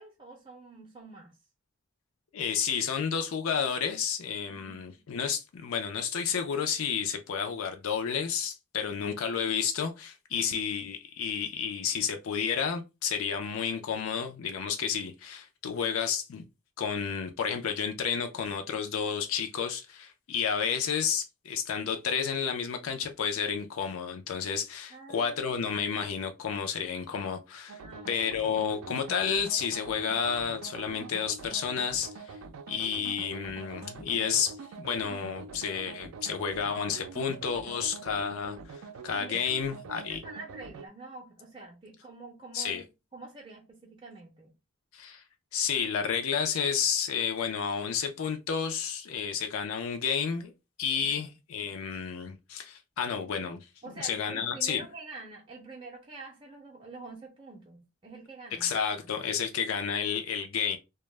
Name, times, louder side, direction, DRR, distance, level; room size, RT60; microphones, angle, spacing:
voice 1, 0.0-1.4 4.4-5.0 8.9-9.0 10.3-10.6 24.9-25.6 27.8-28.1 39.3-39.5 40.0-42.8 43.1-44.5 51.0-51.3 53.8-58.8, right 3 dB, 25° right, 0.4 m, -47 dB
voice 2, 2.3-16.4 16.8-27.8 28.1-32.4 32.7-40.2 42.5-42.8 44.9-45.2 45.5-50.5 50.8-53.6 54.0-54.9 58.6-60.8, left 7 dB, 85° left, 0.4 m, -31 dB
sound 1, 27.7-40.9, right 5 dB, 85° right, 0.4 m, -45 dB
2.2 x 2.0 x 3.1 m
head